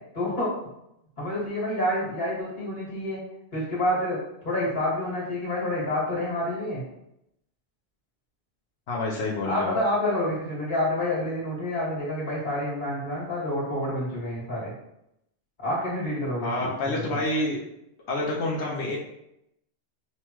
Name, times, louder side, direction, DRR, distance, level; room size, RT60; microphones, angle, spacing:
voice 1, 0.1-0.5 1.2-3.2 3.5-6.8 9.4-14.7 15.6-17.2, left 1 dB, 45° left, -7 dB, 1.8 m, -28 dB
voice 2, 8.9-9.7 16.4-17.6 18.1-19.0, left 2 dB, 85° left, -4 dB, 1.0 m, -28 dB
5.5 x 2.2 x 3.0 m, 0.83 s
omnidirectional pair, 1.1 m